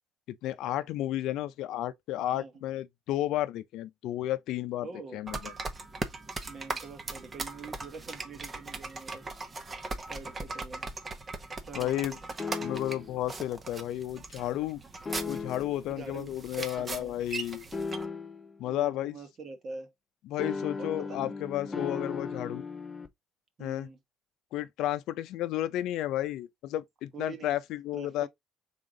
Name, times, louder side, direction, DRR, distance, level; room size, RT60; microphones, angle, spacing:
voice 1, 0.3-5.5 11.7-12.2 12.6-14.8 15.3-17.7 18.6-19.2 20.3-22.6 23.6-23.9 24.5-28.3, left 13 dB, 80° left, 0.5 m, -32 dB
voice 2, 4.8-5.2 6.5-9.2 10.1-10.9 11.7-12.2 15.9-16.3 16.6-17.2 18.6-19.9 20.8-21.4 21.6-21.9 23.6-24.0 27.1-27.5 27.9-28.3, right 4 dB, 45° right, 1.3 m, -44 dB
sound 1, 5.3-18.1, right 3 dB, 30° right, 0.9 m, -39 dB
sound 2, 12.4-13.2 15.0-15.9 17.7-18.6 20.4-23.1, left 4 dB, 25° left, 0.7 m, -36 dB
3.7 x 3.6 x 3.7 m
cardioid pair, 100°, 0 cm